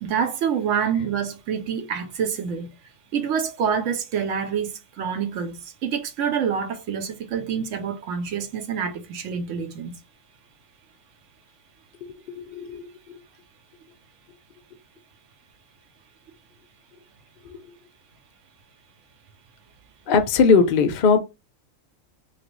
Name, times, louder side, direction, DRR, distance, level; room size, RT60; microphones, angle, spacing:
voice 1, 0.0-2.7 3.1-10.0, right 7 dB, 70° right, 0.9 m, -27 dB
voice 2, 12.3-12.9 17.4-17.6 20.1-21.2, left 5 dB, 60° left, 0.5 m, -19 dB
3.2 x 2.4 x 3.0 m
omnidirectional pair, 1.4 m